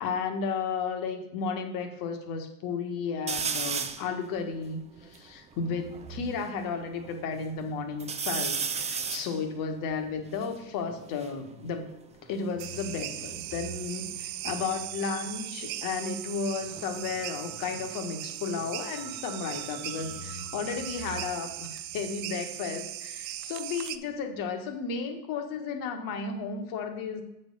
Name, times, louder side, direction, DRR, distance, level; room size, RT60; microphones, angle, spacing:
voice 1, 0.0-11.9 12.3-27.2, left 5 dB, 50° left, 5 dB, 1.6 m, -33 dB
sound 1, 3.3-4.1 4.7-4.8 4.9-6.5 7.0-7.6 8.0-11.4 12.3-14.2 14.5-15.0 16.5-19.2 19.5-20.3, right 6 dB, 15° right, 0.5 m, -36 dB
sound 2, 5.6-12.1 12.5-19.6 20.0-24.4, right 3 dB, 85° right, 1.8 m, -51 dB
sound 3, 12.6-24.0, right 13 dB, 70° right, 0.7 m, -38 dB
7.7 x 4.4 x 5.5 m, 0.88 s
hypercardioid pair, 95°, 44 cm